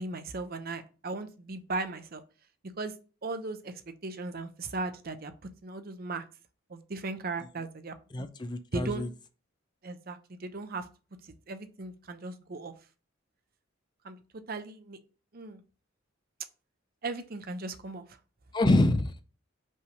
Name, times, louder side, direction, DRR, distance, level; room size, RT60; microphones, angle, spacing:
voice 1, 0.0-2.2 2.8-2.9 3.2-3.7 4.0-5.3 5.6-6.2 6.7-7.9 8.7-9.0 9.8-10.8 11.3-12.7 14.0-14.2 14.5-15.0 15.3-15.6 17.0-18.0, right 3 dB, 45° right, 0.7 m, -37 dB
voice 2, 8.1-9.1 18.5-19.2, left 2 dB, 20° left, 0.4 m, -26 dB
5.4 x 3.3 x 5.2 m
head